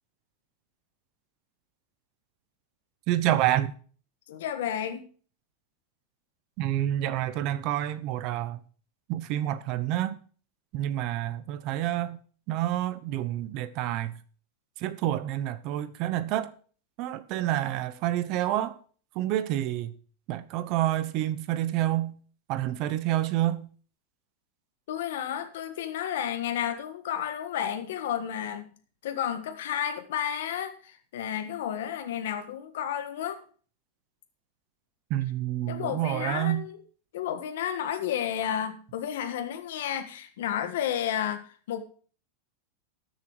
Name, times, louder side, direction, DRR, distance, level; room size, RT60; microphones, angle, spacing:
voice 1, 3.1-3.7 6.6-8.6 9.1-10.2 10.7-12.2 12.5-14.1 14.8-16.5 17.0-18.8 19.2-19.9 20.3-22.1 22.5-23.7 35.1-36.6, right 13 dB, 40° right, 0.9 m, -28 dB
voice 2, 4.3-5.0 24.9-28.7 29.0-33.4 35.7-36.8 37.1-41.8, left 9 dB, 75° left, 1.5 m, -32 dB
13.0 x 7.5 x 4.9 m
supercardioid pair, 160°, 0 cm